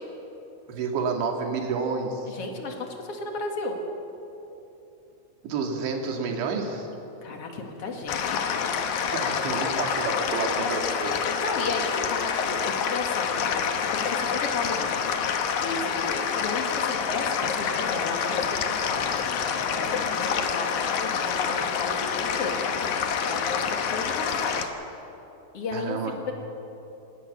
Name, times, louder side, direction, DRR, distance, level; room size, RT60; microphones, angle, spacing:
voice 1, 0.7-2.3 5.4-6.9 9.1-11.2 25.7-26.2, right 4 dB, 70° right, 3 dB, 4.3 m, -29 dB
voice 2, 2.3-3.8 7.2-8.4 11.4-15.0 15.6-19.0 19.5-22.6 23.2-24.7 25.5-26.0 26.3-26.4, left 3 dB, 45° left, 2 dB, 2.1 m, -33 dB
sound 1, 8.1-24.7, left 7 dB, 85° left, 1.7 m, -27 dB
27.0 x 17.5 x 7.0 m, 2.9 s
omnidirectional pair, 5.4 m